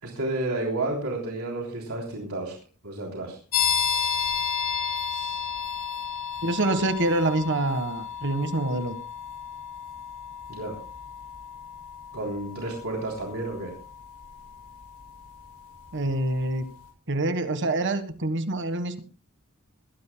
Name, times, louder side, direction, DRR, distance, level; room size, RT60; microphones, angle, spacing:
voice 1, 0.0-2.6 2.8-3.4 5.1-5.5 10.5-10.7 12.1-13.7, right 2 dB, 75° right, -1 dB, 3.5 m, -31 dB
sound 1, 3.5-16.0, left 7 dB, 85° left, 6.8 m, -32 dB
voice 2, 6.4-9.0 15.9-16.6 17.1-19.0, right 2 dB, 55° right, 9 dB, 1.5 m, -26 dB
21.0 x 16.0 x 2.2 m, 0.36 s
head